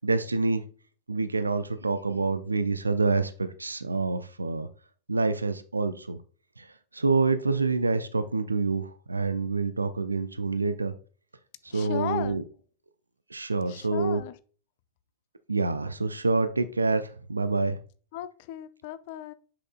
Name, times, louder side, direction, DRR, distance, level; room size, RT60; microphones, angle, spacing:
voice 1, 0.0-0.7 1.1-4.7 5.1-6.2 6.6-10.9 11.6-12.4 13.3-14.2 15.5-17.8, right 3 dB, 80° right, 0.5 m, -27 dB
voice 2, 11.7-12.4 13.7-14.3 18.1-19.3, left 13 dB, 50° left, 0.6 m, -36 dB
7.6 x 6.1 x 2.3 m
figure-of-eight pair, 90°, 0 cm